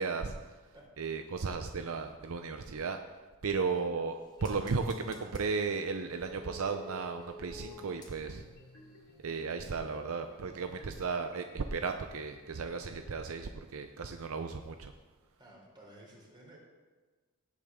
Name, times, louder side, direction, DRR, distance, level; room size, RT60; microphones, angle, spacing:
voice 1, 0.0-0.6 1.0-3.0 3.4-4.2 4.4-8.5 9.2-14.9, right 4 dB, 65° right, 7 dB, 0.6 m, -35 dB
sound 1, 3.5-8.6 8.9-9.0, left 1 dB, 20° left, 1.7 m, -52 dB
voice 2, 3.6-4.0 15.4-16.6, right 1 dB, 20° right, -2 dB, 3.5 m, -55 dB
sound 2, 4.4-12.7, left 1 dB, 80° left, 2.4 m, -57 dB
18.0 x 8.5 x 3.7 m, 1.3 s
head